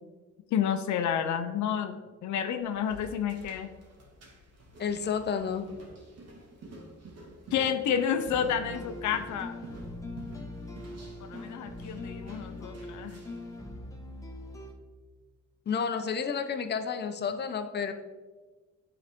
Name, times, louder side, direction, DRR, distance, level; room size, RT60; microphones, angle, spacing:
voice 1, 0.5-3.7 7.5-9.6 11.2-13.2, left 8 dB, 75° left, 8 dB, 0.6 m, -30 dB
sound 1, 2.6-13.5, right 1 dB, 55° right, 1.7 m, -50 dB
voice 2, 4.8-5.7 15.7-17.9, left 6 dB, 35° left, 7 dB, 0.6 m, -31 dB
sound 2, 8.2-14.7, left 2 dB, 10° left, 1.1 m, -42 dB
9.3 x 3.9 x 3.5 m, 1.3 s
cardioid pair, 90°, 30 cm